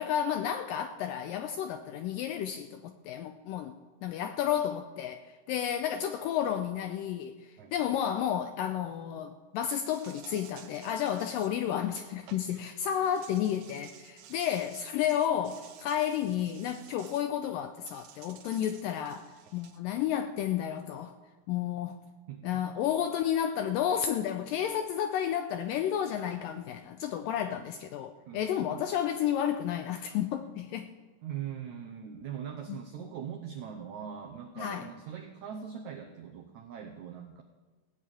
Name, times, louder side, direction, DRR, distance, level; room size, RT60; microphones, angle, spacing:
voice 1, 0.0-3.8 4.0-5.2 5.5-21.1 21.5-22.0 22.4-30.9 32.7-32.8 34.6-34.9, left 9 dB, 85° left, 2.0 m, -31 dB
Insect, 9.9-12.6 13.0-17.3 17.9-19.8, right 9 dB, 70° right, 2.4 m, -53 dB
voice 2, 22.3-22.6 27.4-27.6 28.2-28.8 31.2-37.4, right 8 dB, 90° right, 1.6 m, -41 dB
16.5 x 6.6 x 8.8 m
omnidirectional pair, 4.5 m